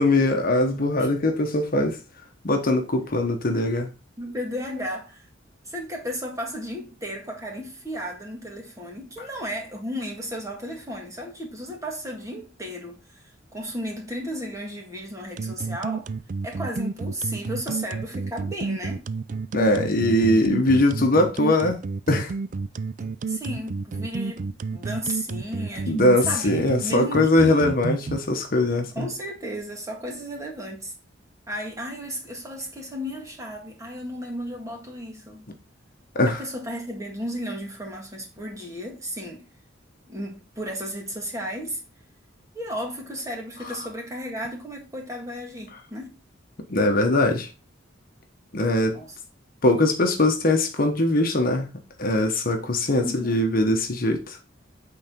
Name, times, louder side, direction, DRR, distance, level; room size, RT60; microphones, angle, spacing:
voice 1, 0.0-2.0 2.4-3.9 19.5-21.8 22.1-22.3 25.9-29.1 36.1-36.4 46.7-47.5 48.5-49.0 49.6-51.7 52.0-54.4, left 1 dB, 50° left, 1.1 m, -21 dB
voice 2, 4.2-5.3 5.6-13.2 13.5-16.1 16.4-19.0 23.3-27.8 28.8-30.9 31.5-35.4 36.3-39.5 40.1-41.8 42.5-46.2 48.9-49.2 53.0-53.5, equal, 15° right, 1.8 m, -34 dB
sound 1, 15.4-28.2, right 4 dB, 40° right, 0.4 m, -30 dB
8.6 x 4.0 x 3.6 m
head